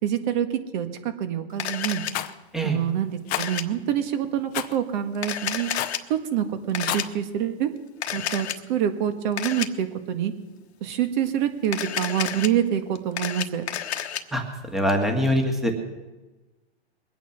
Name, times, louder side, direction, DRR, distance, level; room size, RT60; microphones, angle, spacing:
voice 1, 0.0-2.0 2.6-5.7 6.1-7.7 8.1-10.3 10.8-13.6, right 10 dB, 45° right, 9 dB, 1.7 m, -26 dB
Camera, 1.6-2.1 3.3-3.6 5.1-6.0 6.7-7.0 8.0-8.6 9.4-9.7 11.6-12.5 13.0-14.2, left 9 dB, 80° left, 1.3 m, -30 dB
Rattle, 2.1-2.3 3.3-3.5 4.5-4.8 5.7-6.0 6.7-7.1, left 14 dB, 25° left, 0.7 m, -29 dB
voice 2, 14.3-15.7, equal, ahead, 3 dB, 1.8 m, -24 dB
22.0 x 9.2 x 6.6 m, 1.1 s
hypercardioid pair, 140°, 32 cm